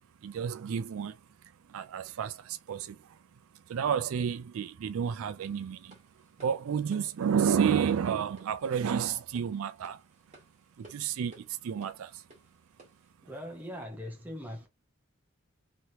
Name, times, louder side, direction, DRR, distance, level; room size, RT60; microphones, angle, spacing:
voice 1, 0.2-1.2 1.7-3.2 3.5-6.0 6.4-10.0 10.8-12.2, right 7 dB, 75° right, 0.3 m, -31 dB
sound 1, 5.4-13.1, right 2 dB, 30° right, 1.3 m, -57 dB
voice 2, 13.2-14.7, equal, 10° right, 0.9 m, -41 dB
3.2 x 3.0 x 2.8 m
head